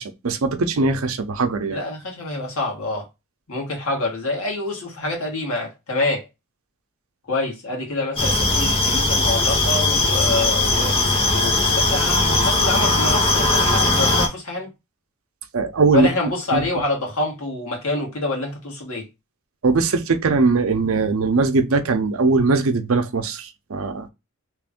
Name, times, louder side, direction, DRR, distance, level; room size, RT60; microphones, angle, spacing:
voice 1, 0.0-1.8 15.5-16.1 16.5-16.6 19.6-24.1, right 3 dB, 70° right, 0.6 m, -20 dB
voice 2, 1.7-3.0 3.5-6.2 7.3-11.0 11.3-14.7 15.9-19.1, left 2 dB, 85° left, 1.6 m, -26 dB
sound 1, 8.2-14.3, left 2 dB, 25° left, 0.9 m, -19 dB
3.1 x 2.5 x 3.6 m
head